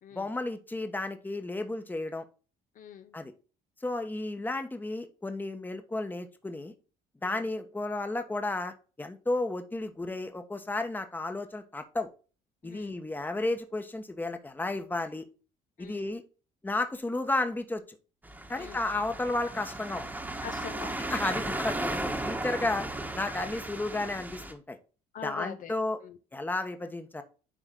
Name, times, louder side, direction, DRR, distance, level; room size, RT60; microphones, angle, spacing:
voice 1, 0.1-2.2 3.1-3.3 3.8-6.7 7.2-12.1 12.6-15.2 15.8-16.2 16.6-18.0 18.5-20.1 21.1-22.9 23.1-24.8 25.2-26.0 26.3-27.2, left 2 dB, 10° left, 1.2 m, -33 dB
voice 2, 2.7-3.1 7.2-7.4 12.6-13.0 15.8-16.1 18.6-18.8 20.4-21.6 25.1-25.7 26.0-26.2, left 8 dB, 50° left, 0.9 m, -44 dB
sound 1, 18.2-24.5, right 2 dB, 10° right, 1.4 m, -35 dB
10.0 x 4.0 x 3.8 m
cardioid pair, 110°, 17 cm